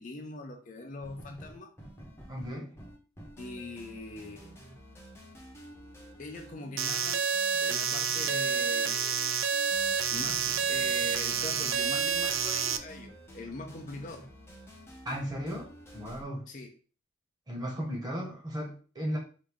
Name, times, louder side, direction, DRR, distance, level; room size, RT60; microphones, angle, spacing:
voice 1, 0.0-1.7 3.4-4.6 6.2-7.3 7.6-9.3 10.1-14.3 16.5-16.7, left 2 dB, 40° left, 3 dB, 0.5 m, -42 dB
sound 1, 1.0-16.2, right 1 dB, 10° left, 0.8 m, -50 dB
voice 2, 2.3-2.7 15.0-16.5 17.5-19.2, equal, 20° right, -2 dB, 1.2 m, -36 dB
sound 2, 6.8-12.8, right 7 dB, 70° right, 0.4 m, -29 dB
4.7 x 2.7 x 3.5 m, 0.39 s
head